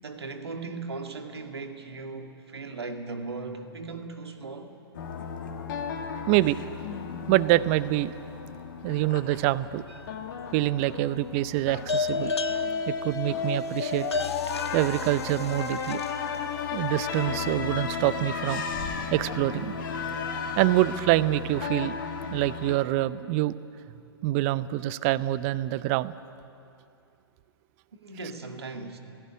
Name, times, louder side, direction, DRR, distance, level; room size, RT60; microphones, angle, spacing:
voice 1, 0.0-4.8 27.9-29.0, right 3 dB, 75° right, 5 dB, 2.1 m, -38 dB
sound 1, 4.9-22.8, left 6 dB, 50° left, 2.3 m, -34 dB
voice 2, 6.3-6.6 7.3-8.1 8.8-9.8 10.5-12.3 12.9-14.1 14.7-16.0 16.7-18.6 19.1-19.7 20.6-22.0 22.3-23.5 24.2-26.1, right 16 dB, 35° right, 17 dB, 0.6 m, -25 dB
sound 2, 9.9-10.5 11.9-16.4, left 4 dB, 85° left, 1.3 m, -33 dB
17.0 x 17.0 x 9.6 m, 2.6 s
figure-of-eight pair, 115°, 14 cm